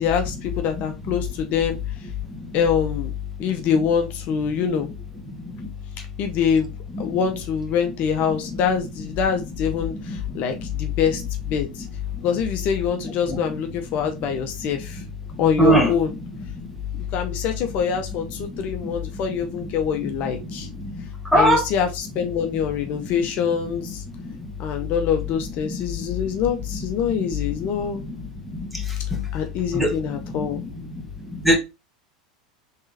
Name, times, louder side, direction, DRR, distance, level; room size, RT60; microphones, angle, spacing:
voice 1, 0.0-1.8 2.5-3.1 3.4-4.9 6.2-6.7 7.0-11.8 12.2-15.0 15.4-16.1 17.1-20.7 21.3-24.0 24.6-28.1 29.3-30.6, left 7 dB, 50° left, 0.7 m, -24 dB
voice 2, 15.6-15.9 21.3-21.6 29.7-29.9 31.4-31.6, right 1 dB, ahead, 1.4 m, -16 dB
3.7 x 3.6 x 2.7 m
hypercardioid pair, 90°, 4 cm